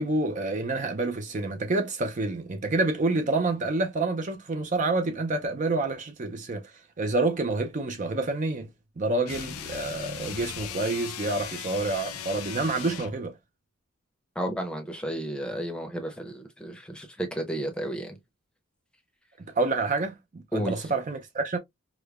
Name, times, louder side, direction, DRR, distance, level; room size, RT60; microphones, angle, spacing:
voice 1, 0.0-8.7 9.0-13.3 19.4-21.6, right 2 dB, 35° right, 0.4 m, -28 dB
sound 1, 9.2-13.2, left 8 dB, 85° left, 0.6 m, -38 dB
voice 2, 14.4-18.2 20.5-20.8, right 1 dB, 5° left, 0.7 m, -32 dB
4.9 x 2.1 x 2.3 m
head